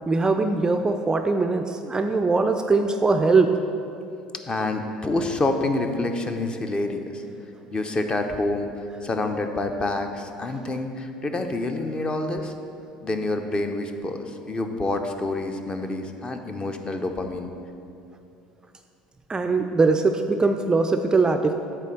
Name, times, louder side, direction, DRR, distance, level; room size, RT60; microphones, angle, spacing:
voice 1, 0.1-3.5 19.3-21.5, right 3 dB, 20° right, 6 dB, 0.4 m, -21 dB
voice 2, 4.5-7.2 7.7-8.7 9.0-12.5 13.0-17.5, left 2 dB, 25° left, 6 dB, 0.6 m, -27 dB
8.4 x 3.3 x 6.4 m, 2.7 s
figure-of-eight pair, 65°, 4 cm